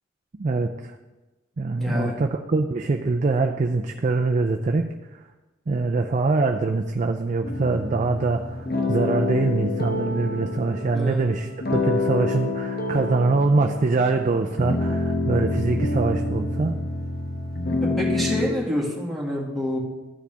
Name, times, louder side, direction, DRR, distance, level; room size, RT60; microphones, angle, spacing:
voice 1, 0.4-0.9 1.6-4.9 5.1-5.2 5.7-16.8, right 3 dB, 40° right, 4 dB, 0.4 m, -24 dB
voice 2, 1.8-2.2 10.9-11.2 17.8-19.8, equal, ahead, -4 dB, 2.0 m, -27 dB
sound 1, 7.4-18.5, left 2 dB, 55° left, 1.1 m, -27 dB
13.5 x 4.9 x 3.4 m, 1.1 s
head